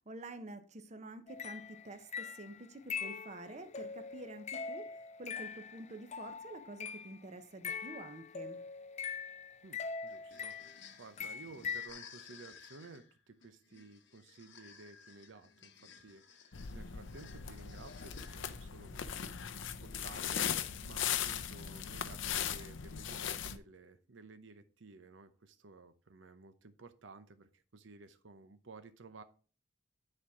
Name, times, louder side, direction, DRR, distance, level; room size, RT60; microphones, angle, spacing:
voice 1, 0.1-8.6, right 2 dB, 40° right, 9 dB, 0.8 m, -48 dB
sound 1, 1.3-7.2 7.6-10.9 11.2-11.9, left 6 dB, 35° left, 0.4 m, -42 dB
voice 2, 9.6-29.2, right 3 dB, 90° right, 10 dB, 0.8 m, -55 dB
sound 2, 10.1-18.7, left 6 dB, 70° left, 1.0 m, -57 dB
sound 3, 16.5-23.6, left 8 dB, 90° left, 0.6 m, -38 dB
9.9 x 4.4 x 4.8 m, 0.37 s
head